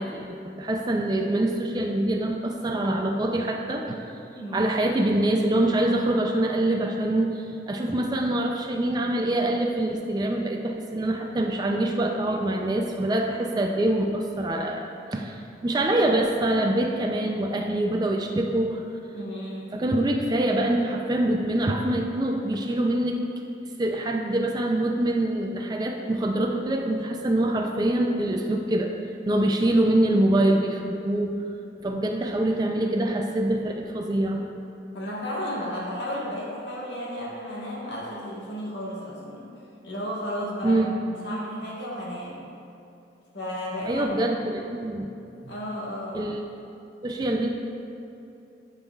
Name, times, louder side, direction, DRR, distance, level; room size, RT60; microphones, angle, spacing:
voice 1, 0.0-4.0 4.5-18.8 19.7-23.2 23.8-28.9 29.3-31.4 31.8-34.4 40.6-40.9 43.9-45.1 45.4-45.5 46.1-46.4 47.0-47.5, right 1 dB, 20° right, 1 dB, 0.3 m, -25 dB
voice 2, 4.3-4.7 19.1-19.8 34.9-39.5 39.8-42.5 43.3-44.1 44.5-44.7 45.5-46.3, equal, 70° left, -5 dB, 1.3 m, -33 dB
10.0 x 5.5 x 2.3 m, 2.8 s
head